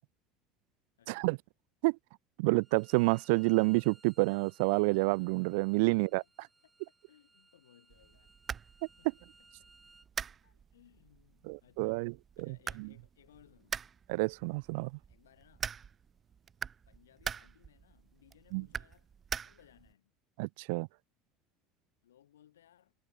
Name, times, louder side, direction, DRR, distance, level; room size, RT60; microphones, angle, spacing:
voice 1, 1.0-1.3 5.8-6.7 7.0-8.3 9.0-9.7 10.4-13.8 15.1-15.7 16.9-20.1 22.0-22.9, left 11 dB, 70° left, 4.5 m, -65 dB
voice 2, 2.4-6.2 11.5-12.1 12.5-12.9 14.1-14.9 18.5-18.6 20.4-20.9, right 29 dB, 60° right, 0.4 m, -29 dB
Bowed string instrument, 2.6-10.1, right 3 dB, 15° right, 6.1 m, -63 dB
sound 1, 7.9-19.9, right 7 dB, 30° right, 1.5 m, -44 dB
figure-of-eight pair, 70°, 0 cm